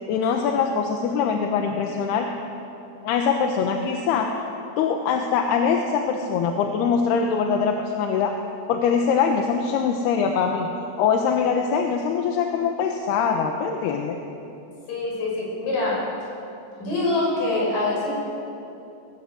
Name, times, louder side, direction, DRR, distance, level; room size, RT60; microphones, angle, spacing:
voice 1, 0.1-2.3 3.0-4.3 4.8-8.3 8.7-10.7 11.0-14.2, left 6 dB, 80° left, 3 dB, 3.1 m, -23 dB
voice 2, 14.9-16.0 16.8-18.1, left 2 dB, 55° left, -3 dB, 7.5 m, -24 dB
21.0 x 19.0 x 8.0 m, 2.8 s
omnidirectional pair, 4.7 m